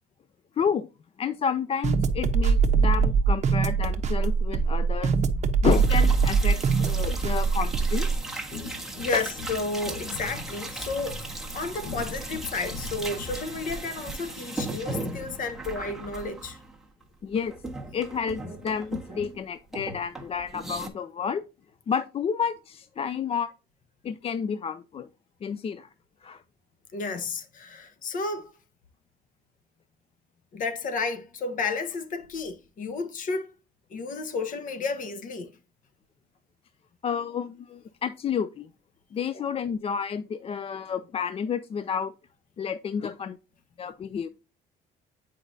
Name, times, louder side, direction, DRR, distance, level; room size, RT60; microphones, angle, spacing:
voice 1, 0.6-0.9 1.2-5.2 5.6-8.2 9.1-9.2 17.2-17.5 17.9-21.4 21.9-23.5 24.0-25.1 25.4-25.9 26.2-26.4 37.0-38.7 39.1-42.1 42.6-43.4 43.8-44.3, left 7 dB, 35° left, 0.4 m, -30 dB
sound 1, 1.8-8.2, right 5 dB, 40° right, 0.9 m, -22 dB
sound 2, 5.7-17.0 17.3-19.4 19.7-20.9, right 2 dB, ahead, 1.5 m, -37 dB
sound 3, 8.1-13.5, left 4 dB, 75° left, 1.3 m, -41 dB
voice 2, 9.0-11.3 11.5-16.6 26.9-28.5 30.5-33.5 33.9-35.5, left 3 dB, 55° left, 1.2 m, -32 dB
8.0 x 4.9 x 2.7 m
cardioid pair, 110°, 17 cm